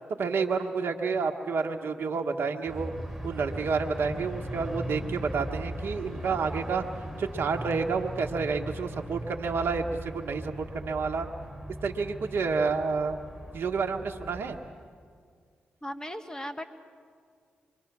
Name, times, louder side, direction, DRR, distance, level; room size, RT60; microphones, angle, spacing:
voice 1, 0.2-2.9 3.2-6.8 7.2-11.3 11.8-13.2 13.5-14.6, right 5 dB, 70° right, 3 dB, 1.1 m, -29 dB
sound 1, 2.7-14.7, right 1 dB, ahead, 4.5 m, -39 dB
voice 2, 15.8-16.6, equal, 15° left, 8 dB, 1.6 m, -37 dB
25.0 x 22.5 x 6.0 m, 2.1 s
supercardioid pair, 40°, 4 cm